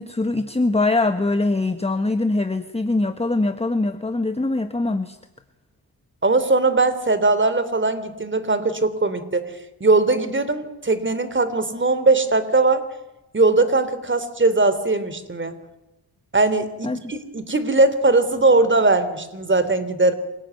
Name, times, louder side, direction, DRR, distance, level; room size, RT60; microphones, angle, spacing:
voice 1, 0.0-5.2 16.8-17.0, left 2 dB, 15° left, 8 dB, 1.5 m, -22 dB
voice 2, 6.2-9.5 9.8-12.8 13.3-15.6 16.3-20.1, right 3 dB, 30° right, 13 dB, 3.2 m, -20 dB
26.5 x 18.5 x 9.3 m, 1.0 s
cardioid pair, 75°, 41 cm